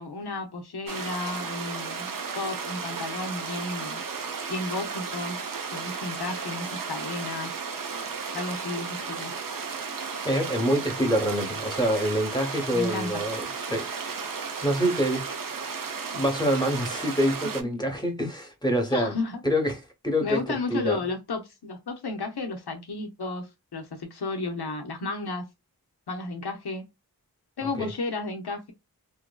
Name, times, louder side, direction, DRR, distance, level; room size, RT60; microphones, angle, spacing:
voice 1, 0.0-4.0 4.5-5.4 5.7-7.5 8.3-9.3 12.7-13.1 17.6-17.8 18.9-19.4 20.2-23.5 23.7-25.5 26.1-26.8 27.6-28.7, left 3 dB, 90° left, 0.8 m, -33 dB
sound 1, 0.9-17.6, right 5 dB, 60° right, 0.6 m, -34 dB
voice 2, 10.2-13.9 14.6-15.3 16.1-19.2 19.4-21.0 27.6-27.9, equal, 10° left, 0.9 m, -26 dB
2.7 x 2.5 x 2.2 m
wide cardioid pair, 45°, 38 cm